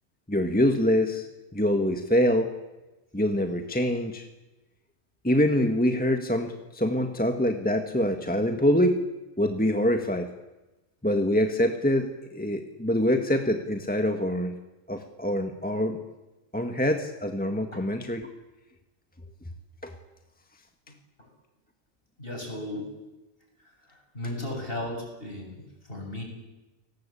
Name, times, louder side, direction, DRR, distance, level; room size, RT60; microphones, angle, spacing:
voice 1, 0.3-1.3 1.5-2.5 3.1-4.2 5.2-9.0 9.4-10.3 11.0-14.6 14.9-16.0 16.5-18.3 19.8-19.9, equal, 5° left, 5 dB, 1.7 m, -25 dB
voice 2, 22.2-22.9 23.9-26.2, left 1 dB, 45° left, 2 dB, 7.7 m, -35 dB
29.5 x 19.0 x 8.6 m, 1.1 s
omnidirectional pair, 1.4 m